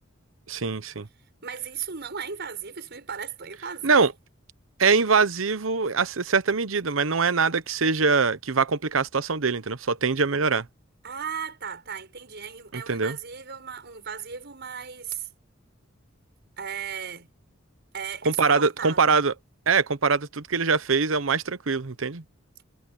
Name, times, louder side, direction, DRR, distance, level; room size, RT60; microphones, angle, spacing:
voice 1, 0.5-1.1 3.8-4.1 4.8-10.7 12.7-13.2 18.2-19.3 19.7-22.2, right 4 dB, 75° right, 1.0 m, -23 dB
voice 2, 1.4-4.0 11.0-15.3 16.6-17.3 17.9-19.2, right 7 dB, 55° right, 5.8 m, -36 dB
head